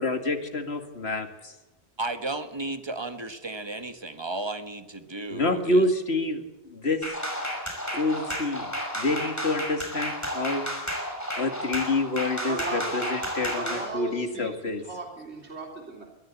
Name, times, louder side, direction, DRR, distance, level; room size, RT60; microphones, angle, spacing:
voice 1, 0.0-1.5 5.3-6.4 6.7-7.0 7.9-10.6 11.4-14.8, left 2 dB, 75° left, 7 dB, 2.4 m, -27 dB
voice 2, 2.0-5.8, right 2 dB, 25° right, 9 dB, 1.6 m, -34 dB
sound 1, 7.0-13.9, equal, 15° left, 5.4 m, -32 dB
voice 3, 12.4-12.9 13.2-14.5 14.8-16.1, right 3 dB, 90° right, 1 dB, 3.8 m, -37 dB
22.5 x 15.0 x 8.3 m, 1.1 s
omnidirectional pair, 1.1 m